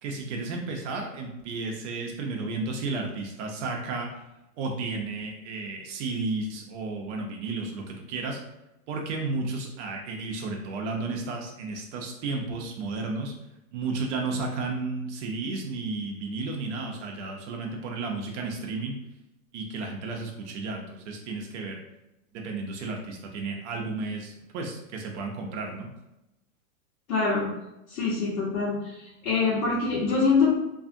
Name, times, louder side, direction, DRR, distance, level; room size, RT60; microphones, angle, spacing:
voice 1, 0.0-4.2 4.6-8.4 8.9-13.3 13.7-18.9 19.5-21.8 22.3-25.9, right 3 dB, 55° right, 1 dB, 0.6 m, -33 dB
voice 2, 27.1-27.5 27.9-30.5, left 4 dB, 75° left, -7 dB, 1.1 m, -25 dB
2.6 x 2.4 x 2.5 m, 0.90 s
hypercardioid pair, 115°, 42 cm